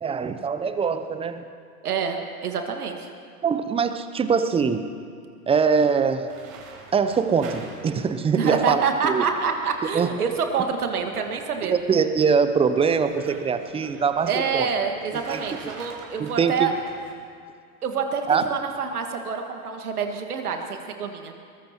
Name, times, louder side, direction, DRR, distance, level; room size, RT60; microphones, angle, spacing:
voice 1, 0.0-1.4 3.4-4.9 5.5-6.3 6.9-9.2 9.9-10.1 11.7-14.7 15.3-15.4 16.2-16.7 18.3-18.4, right 6 dB, 15° right, 10 dB, 0.6 m, -23 dB
voice 2, 1.8-3.1 8.3-11.7 14.3-16.7 17.8-21.3, right 6 dB, 75° right, 4 dB, 2.0 m, -27 dB
sound 1, 6.3-17.1, right 4 dB, 35° right, 4.1 m, -45 dB
22.5 x 20.5 x 3.0 m, 2.2 s
figure-of-eight pair, 95°, 45 cm